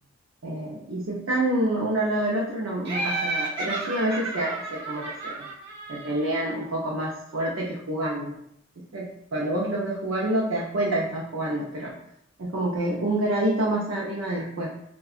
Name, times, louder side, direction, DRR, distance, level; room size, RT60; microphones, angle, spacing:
voice 1, 0.4-5.5 5.9-8.4 8.8-11.9 12.4-14.7, right 1 dB, 85° right, -4 dB, 0.6 m, -27 dB
Laughter, 2.8-6.5, right 2 dB, 55° right, 1.0 m, -32 dB
4.6 x 2.3 x 2.4 m, 0.75 s
head